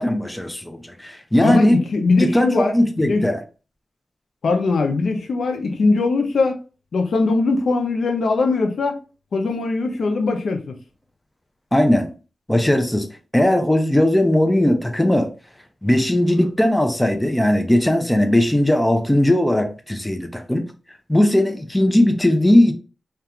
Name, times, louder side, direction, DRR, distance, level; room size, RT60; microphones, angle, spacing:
voice 1, 0.0-1.8 2.2-3.4 11.7-12.1 12.5-13.1 13.3-15.3 15.8-20.6 21.1-22.7, left 1 dB, 10° left, 0.4 m, -18 dB
voice 2, 1.4-2.7 3.0-3.2 4.4-6.5 6.9-9.0 9.3-10.7, left 3 dB, 80° left, 0.4 m, -20 dB
2.3 x 2.2 x 2.8 m
wide cardioid pair, 135°, 0 cm